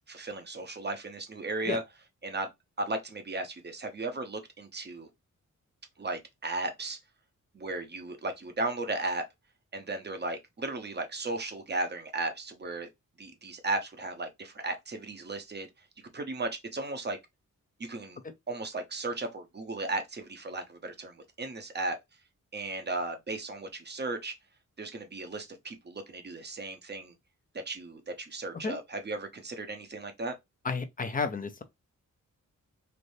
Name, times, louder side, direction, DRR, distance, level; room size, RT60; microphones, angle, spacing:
voice 1, 0.1-1.8 2.2-2.5 2.8-5.1 6.0-7.0 7.5-9.2 9.7-12.9 13.2-15.7 16.1-17.2 17.8-18.2 18.5-22.0 22.5-24.3 24.8-27.1 27.5-30.3, right 2 dB, 35° right, 0.7 m, -35 dB
voice 2, 30.6-31.6, left 4 dB, 25° left, 0.5 m, -32 dB
3.3 x 2.6 x 2.6 m
wide cardioid pair, 125°, 32 cm